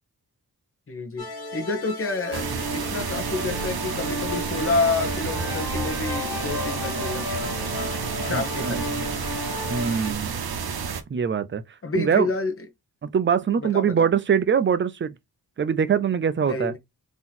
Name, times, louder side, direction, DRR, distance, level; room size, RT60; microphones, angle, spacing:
voice 1, 0.9-1.3 1.5-7.7 8.2-9.1 11.8-12.5 13.6-14.1 16.4-16.8, left 3 dB, 35° left, 1.0 m, -29 dB
sound 1, 1.2-10.1, left 2 dB, 80° left, 1.1 m, -34 dB
sound 2, 2.3-11.0, right 6 dB, 75° right, 0.8 m, -30 dB
voice 2, 8.3-8.8 9.7-10.4 11.1-11.6 11.9-12.3 13.0-15.1 15.6-16.7, right 7 dB, 30° right, 0.4 m, -23 dB
3.9 x 2.9 x 4.0 m
wide cardioid pair, 140°, 38 cm